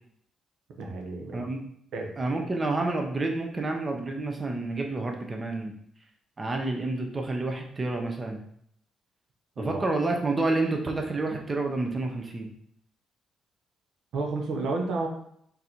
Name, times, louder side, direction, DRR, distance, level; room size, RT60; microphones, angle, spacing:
voice 1, 0.8-1.5 1.9-2.1 9.6-9.8 14.1-15.1, right 3 dB, 75° right, 2 dB, 0.8 m, -31 dB
voice 2, 2.2-5.7 6.4-8.4 9.6-12.5, right 2 dB, 25° right, 2 dB, 0.6 m, -29 dB
3.8 x 2.7 x 4.3 m, 0.69 s
cardioid pair, 90°, 0 cm